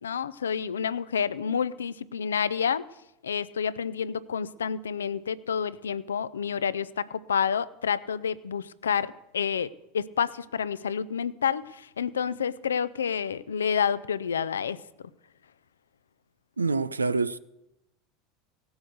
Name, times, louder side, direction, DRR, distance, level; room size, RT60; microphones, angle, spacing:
voice 1, 0.0-2.8 3.2-15.1, left 7 dB, 80° left, 0.5 m, -29 dB
voice 2, 16.6-17.4, right 4 dB, 90° right, 0.4 m, -26 dB
17.0 x 8.0 x 6.5 m
figure-of-eight pair, 80°, 0 cm